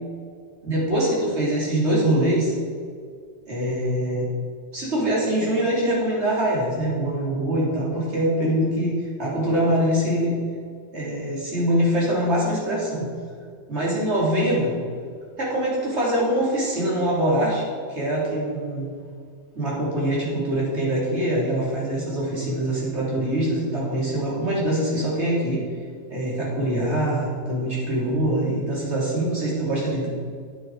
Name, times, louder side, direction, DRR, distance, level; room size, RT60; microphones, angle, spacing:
voice 1, 0.6-2.5 3.5-4.3 4.7-10.4 10.9-13.1 13.7-14.8 15.4-18.9 19.5-25.6 26.1-30.1, right 1 dB, 75° right, -6 dB, 3.6 m, -23 dB
9.4 x 8.8 x 4.8 m, 2.2 s
omnidirectional pair, 1.2 m